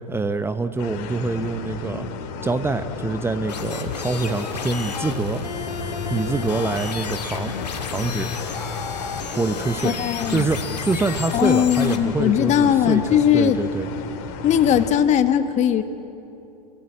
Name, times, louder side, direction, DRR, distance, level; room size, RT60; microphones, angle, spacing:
voice 1, 0.1-2.1 2.4-5.4 6.1-7.5 7.9-8.3 9.3-10.0 10.3-13.9, right 3 dB, 10° right, 10 dB, 0.9 m, -25 dB
sound 1, 0.8-14.9, left 5 dB, 55° left, 3.3 m, -33 dB
sound 2, 3.5-12.0, left 5 dB, 85° left, 2.6 m, -32 dB
voice 2, 9.8-10.4 11.3-13.6 14.4-15.8, left 9 dB, 35° left, 10 dB, 1.5 m, -19 dB
26.5 x 23.5 x 8.7 m, 2.8 s
hypercardioid pair, 100°, 20 cm